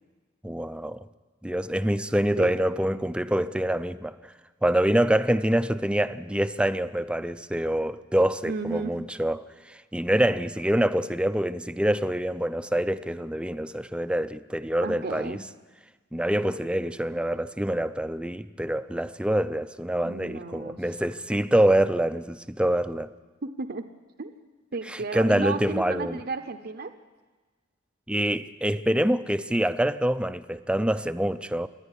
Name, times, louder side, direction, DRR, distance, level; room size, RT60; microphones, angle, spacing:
voice 1, 0.4-1.1 1.4-4.3 4.6-15.4 16.1-23.1 24.9-26.2 28.1-31.7, right 1 dB, 5° right, 0.5 m, -26 dB
voice 2, 8.4-8.9 14.8-15.4 20.0-20.8 23.4-23.8 24.2-24.3 24.7-26.9, right 3 dB, 55° right, 0.9 m, -33 dB
27.5 x 10.0 x 9.9 m
head